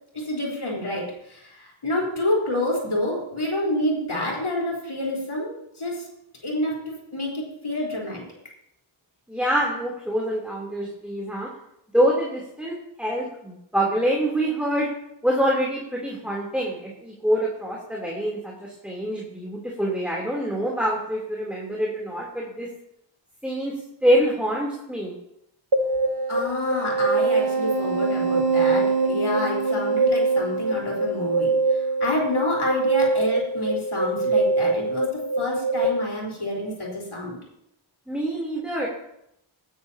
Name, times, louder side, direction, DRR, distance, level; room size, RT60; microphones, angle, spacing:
voice 1, 0.1-6.1 6.4-8.2 26.3-37.4, left 1 dB, 85° left, -3 dB, 4.4 m, -28 dB
voice 2, 9.3-11.5 11.9-14.9 15.2-22.7 23.4-25.2 38.1-38.9, equal, ahead, -4 dB, 3.4 m, -25 dB
sound 1, 25.7-35.9, right 3 dB, 55° right, 1.3 m, -23 dB
19.0 x 13.0 x 2.9 m, 0.79 s
wide cardioid pair, 45°, 48 cm